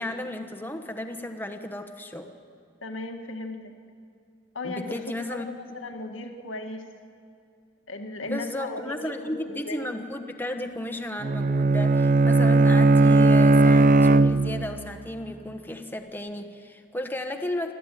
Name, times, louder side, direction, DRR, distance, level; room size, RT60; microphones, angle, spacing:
voice 1, 0.0-2.3 4.6-5.6 8.2-17.7, left 1 dB, 10° left, 5 dB, 1.3 m, -34 dB
voice 2, 2.8-3.8 4.5-5.0 5.3-6.9 7.9-9.9, left 2 dB, 90° left, 4 dB, 1.8 m, -36 dB
Bowed string instrument, 11.2-14.9, right 3 dB, 45° right, 0.5 m, -18 dB
26.0 x 14.0 x 9.2 m, 2.3 s
head